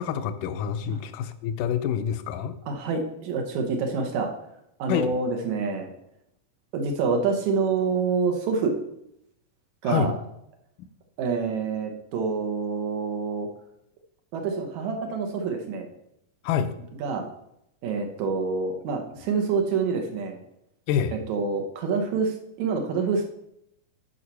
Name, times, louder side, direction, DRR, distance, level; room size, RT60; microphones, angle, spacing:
voice 1, 0.0-2.5 4.9-5.2 9.8-10.1 16.4-16.7 20.9-21.1, left 8 dB, 80° left, 10 dB, 2.1 m, -27 dB
voice 2, 2.7-4.3 4.8-5.9 6.7-8.7 9.8-10.1 11.2-13.5 14.3-15.9 17.0-17.2 17.8-20.4 21.1-23.3, right 5 dB, 65° right, 4 dB, 2.2 m, -27 dB
9.5 x 5.8 x 5.5 m, 0.80 s
omnidirectional pair, 4.0 m